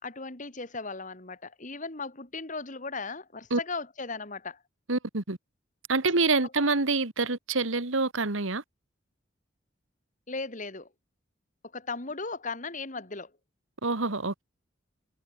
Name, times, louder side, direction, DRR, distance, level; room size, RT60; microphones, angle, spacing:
voice 1, 0.0-4.6 10.3-10.9 11.7-13.3, left 3 dB, 40° left, 2.6 m, -37 dB
voice 2, 4.9-5.4 5.9-8.6 13.8-14.4, right 3 dB, 80° right, 1.9 m, -26 dB
head